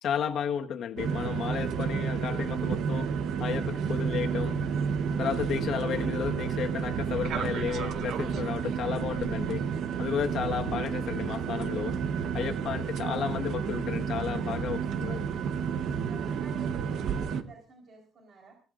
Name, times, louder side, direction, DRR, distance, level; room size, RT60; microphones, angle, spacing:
voice 1, 0.0-3.1 3.4-4.6 5.2-9.6 10.0-12.0 12.3-15.3, left 8 dB, 70° left, 5 dB, 1.5 m, -33 dB
sound 1, 1.0-17.4, right 7 dB, 75° right, 1.0 m, -31 dB
voice 2, 15.9-18.5, right 3 dB, 60° right, 2 dB, 4.2 m, -51 dB
23.0 x 17.5 x 2.6 m, 0.37 s
cardioid pair, 90°, 0 cm